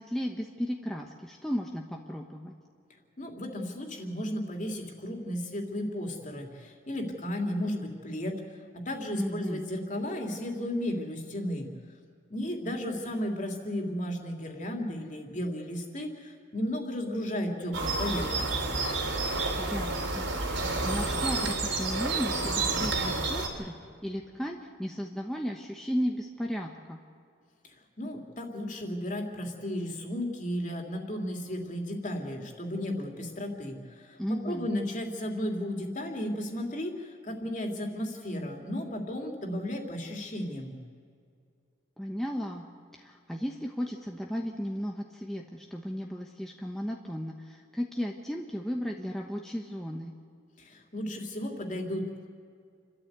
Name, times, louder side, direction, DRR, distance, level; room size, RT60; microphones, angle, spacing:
voice 1, 0.0-2.5 9.1-9.6 19.6-23.7 24.0-27.0 34.2-34.7 42.0-42.6 43.0-50.1, equal, ahead, 0 dB, 1.1 m, -35 dB
voice 2, 3.2-8.4 8.8-11.7 12.3-18.7 27.6-40.7 50.6-52.1, left 1 dB, 40° left, 2 dB, 2.9 m, -34 dB
sound 1, 17.7-23.5, right 3 dB, 75° right, 3.7 m, -30 dB
29.5 x 13.0 x 8.1 m, 2.3 s
head